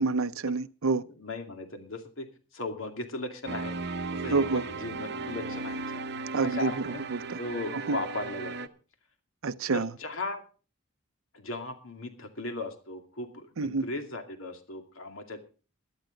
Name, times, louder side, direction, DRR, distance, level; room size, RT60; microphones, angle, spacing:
voice 1, 0.0-1.0 4.3-4.6 6.3-7.4 7.7-8.0 9.4-9.9 13.6-13.9, right 4 dB, 85° right, 0.6 m, -28 dB
voice 2, 1.1-2.3 2.5-3.7 4.1-6.0 6.4-7.0 7.4-8.7 9.7-10.4 11.3-15.4, left 2 dB, 70° left, 2.4 m, -37 dB
sound 1, 3.5-8.7, right 3 dB, 50° right, 0.8 m, -36 dB
17.0 x 12.0 x 3.9 m
head